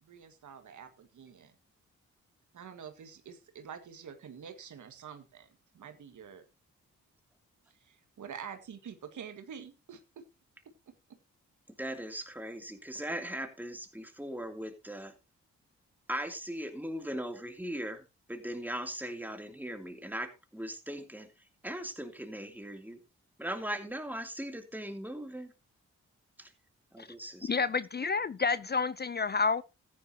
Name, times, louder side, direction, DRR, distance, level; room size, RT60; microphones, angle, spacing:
voice 1, 0.0-1.5 2.5-5.5 5.7-6.5 7.7-10.2 10.7-10.9, right 7 dB, 70° right, 1.8 m, -47 dB
voice 2, 11.8-15.1 16.1-21.3 21.6-23.0 23.4-25.5 26.4-26.5 26.9-27.5, right 1 dB, 5° right, 2.7 m, -39 dB
voice 3, 27.5-29.6, left 4 dB, 35° left, 0.5 m, -29 dB
14.5 x 10.5 x 2.8 m
supercardioid pair, 50°, 31 cm